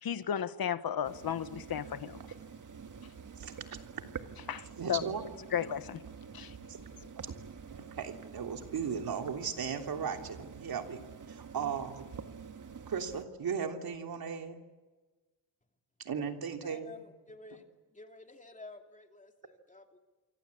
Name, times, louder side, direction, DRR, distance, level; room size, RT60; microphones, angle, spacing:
voice 1, 0.0-2.2 4.5-5.0 5.5-6.0 6.3-6.6, left 9 dB, 70° left, 1.3 m, -34 dB
sound 1, 1.0-13.3, right 6 dB, 55° right, 1.9 m, -48 dB
voice 2, 4.8-5.2 6.7-6.8 7.2-7.3 7.7-12.1 12.9-14.6 16.0-17.0, right 6 dB, 70° right, 3.3 m, -37 dB
voice 3, 16.6-17.6 17.9-20.0, left 2 dB, 20° left, 2.8 m, -51 dB
28.0 x 24.0 x 8.5 m
wide cardioid pair, 140°, 37 cm